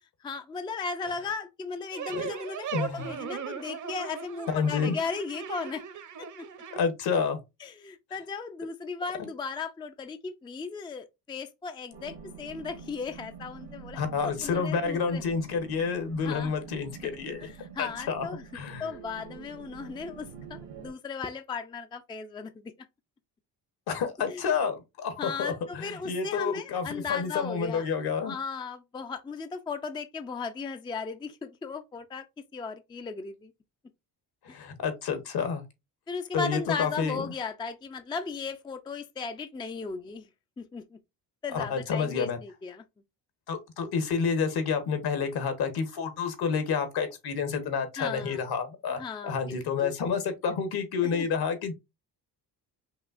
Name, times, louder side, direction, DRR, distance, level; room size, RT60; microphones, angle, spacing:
voice 1, 0.2-5.8 6.2-6.5 7.6-15.2 16.2-16.5 17.4-18.5 18.8-22.7 24.3-24.4 25.2-32.3 32.5-33.5 34.5-34.6 36.1-40.3 40.6-41.0 41.4-42.8 48.0-48.4 48.9-49.9 50.5-50.6 51.0-51.3, left 5 dB, 10° left, 0.4 m, -36 dB
sound 1, 1.9-6.8, right 8 dB, 45° right, 0.8 m, -38 dB
voice 2, 2.7-3.1 4.5-5.0 6.7-7.4 14.0-17.5 17.8-18.3 18.5-18.8 23.9-28.3 34.4-35.6 36.3-37.2 41.5-42.4 43.5-51.7, left 6 dB, 65° left, 1.2 m, -29 dB
sound 2, 11.9-20.9, right 6 dB, 80° right, 1.4 m, -46 dB
5.4 x 2.8 x 2.5 m
cardioid pair, 100°, 41 cm